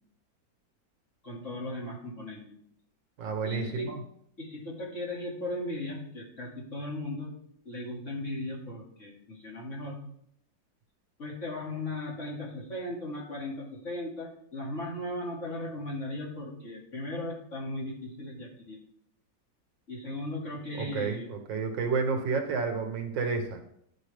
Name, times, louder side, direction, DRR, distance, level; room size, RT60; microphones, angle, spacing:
voice 1, 1.2-2.4 3.4-4.0 4.4-7.3 7.6-10.0 11.2-18.8 19.9-21.3, left 1 dB, 40° left, -5 dB, 2.4 m, -37 dB
voice 2, 3.2-4.0 20.8-23.6, right 5 dB, 70° right, 5 dB, 1.6 m, -30 dB
11.5 x 5.0 x 3.3 m, 0.69 s
omnidirectional pair, 2.1 m